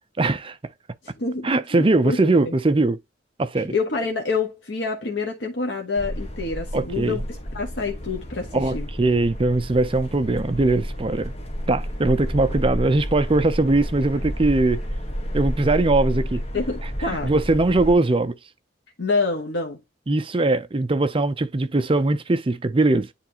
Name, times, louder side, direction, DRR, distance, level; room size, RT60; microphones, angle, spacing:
voice 1, 0.2-0.6 1.4-3.0 3.4-3.7 6.7-7.2 8.5-11.3 11.7-14.8 15.3-16.4 17.1-18.4 20.1-23.1, right 2 dB, 30° right, 0.6 m, -21 dB
voice 2, 1.2-2.2 2.4-2.5 3.7-7.2 7.5-8.9 16.5-17.3 19.0-19.8, left 4 dB, 75° left, 1.2 m, -27 dB
sound 1, 6.0-17.9, equal, 35° left, 1.4 m, -30 dB
9.8 x 3.3 x 2.9 m
head